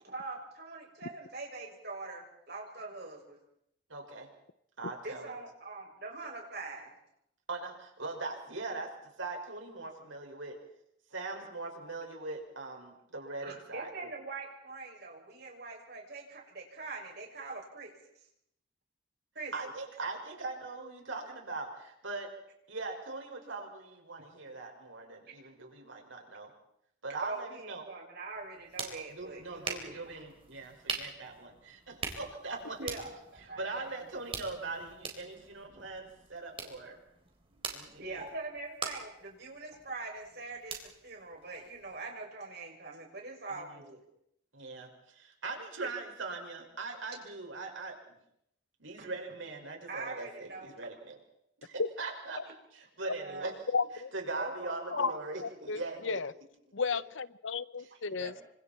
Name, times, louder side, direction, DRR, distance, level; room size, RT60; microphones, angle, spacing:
voice 1, 0.0-3.4 5.0-6.9 11.4-11.5 13.4-17.9 19.3-19.5 27.2-30.1 32.8-33.6 37.5-37.6 38.0-44.0 45.8-45.9 49.0-49.1 49.9-50.7 53.1-53.5 54.3-55.2 55.5-55.6, right 3 dB, 55° right, 0 dB, 6.9 m, -43 dB
voice 2, 3.9-4.3 4.8-5.3 7.5-8.9 9.2-10.6 11.1-13.9 19.5-22.3 22.7-26.5 27.0-27.9 29.1-33.0 33.6-37.0 37.7-38.2 43.5-43.8 44.5-48.1 48.8-51.2 51.6-52.4 52.7-53.5 54.1-56.2 58.1-58.3, right 3 dB, 90° right, 2 dB, 5.9 m, -41 dB
sound 1, 28.3-42.0, right 5 dB, 30° right, 3.9 m, -44 dB
voice 3, 53.7-54.1 54.9-56.3 56.7-58.3, left 4 dB, 85° left, 17 dB, 0.9 m, -33 dB
28.5 x 25.5 x 4.5 m, 0.74 s
head